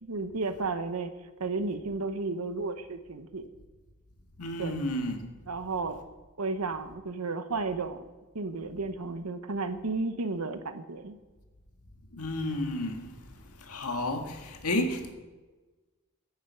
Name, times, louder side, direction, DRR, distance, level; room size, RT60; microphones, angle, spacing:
voice 1, 0.0-1.1 1.4-3.4 4.6-4.8 5.5-6.0 6.4-8.1 8.3-11.2, right 3 dB, 85° right, 9 dB, 0.9 m, -33 dB
voice 2, 4.4-5.3 12.2-13.1 13.7-15.1, left 1 dB, 85° left, 4 dB, 1.7 m, -31 dB
10.0 x 7.2 x 9.1 m, 1.2 s
head